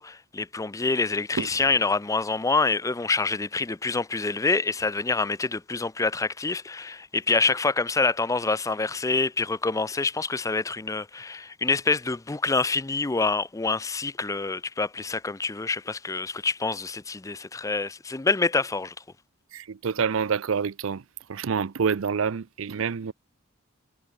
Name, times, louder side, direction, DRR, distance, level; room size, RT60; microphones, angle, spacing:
voice 1, 0.0-18.9, left 3 dB, 15° left, 0.5 m, -26 dB
voice 2, 19.5-21.0 21.3-23.1, right 6 dB, 75° right, 0.5 m, -27 dB
head